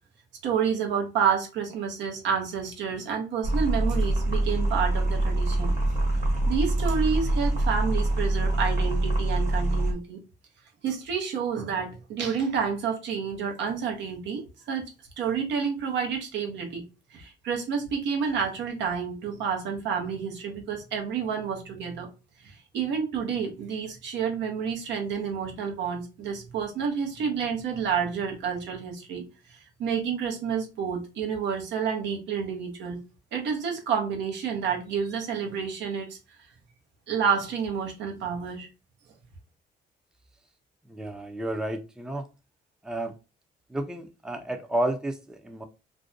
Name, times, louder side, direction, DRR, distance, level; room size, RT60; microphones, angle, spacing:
voice 1, 0.4-5.7 6.5-10.2 10.8-14.9 15.2-16.8 17.1-22.1 22.4-29.3 29.8-33.0 33.3-36.2 37.1-38.7, right 6 dB, 80° right, 0.8 m, -29 dB
sound 1, 3.4-9.9, right 1 dB, 40° right, 1.1 m, -25 dB
voice 2, 40.9-42.3 42.8-43.2 43.7-45.6, right 1 dB, 5° right, 0.4 m, -31 dB
2.5 x 2.2 x 2.5 m
cardioid pair, 85°, 18 cm